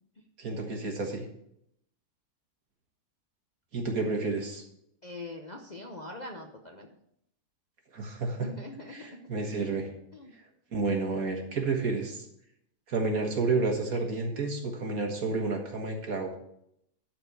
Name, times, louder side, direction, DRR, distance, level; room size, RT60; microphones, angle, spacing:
voice 1, 0.4-1.2 3.7-4.6 7.9-8.5 8.9-9.9 10.7-12.2 12.9-16.4, right 3 dB, 60° right, 3 dB, 2.0 m, -30 dB
voice 2, 5.0-6.9 8.4-9.2 10.1-10.3, left 2 dB, 40° left, 1 dB, 0.7 m, -42 dB
12.0 x 4.4 x 6.7 m, 0.75 s
omnidirectional pair, 1.7 m